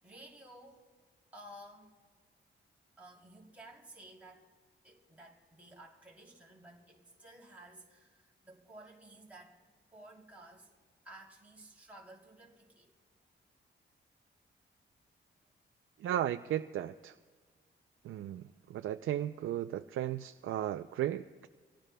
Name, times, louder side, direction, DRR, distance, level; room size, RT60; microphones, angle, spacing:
voice 1, 0.0-0.9 1.3-1.9 3.0-4.5 4.8-9.6 9.9-10.7 11.0-12.9 18.4-18.5, right 1 dB, 5° right, -4 dB, 3.0 m, -54 dB
voice 2, 16.0-17.1 18.0-18.4 18.7-21.5, right 12 dB, 85° right, 8 dB, 0.4 m, -35 dB
27.0 x 17.5 x 2.2 m, 1.5 s
cardioid pair, 90°, 20 cm